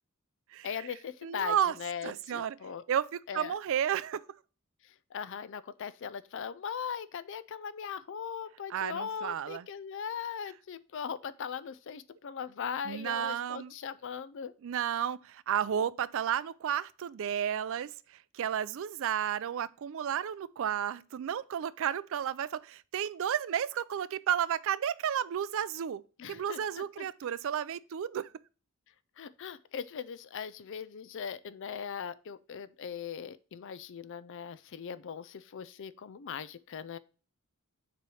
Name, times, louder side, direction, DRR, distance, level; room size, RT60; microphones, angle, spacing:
voice 1, 0.6-2.8 3.3-3.5 4.8-14.5 26.2-27.1 29.2-37.0, left 7 dB, 60° left, 0.4 m, -39 dB
voice 2, 1.2-1.7 2.0-2.6 2.9-4.2 8.7-9.6 12.9-13.7 14.6-17.9 18.3-26.0 26.3-28.3, right 9 dB, 65° right, 0.3 m, -32 dB
6.8 x 3.1 x 4.8 m
head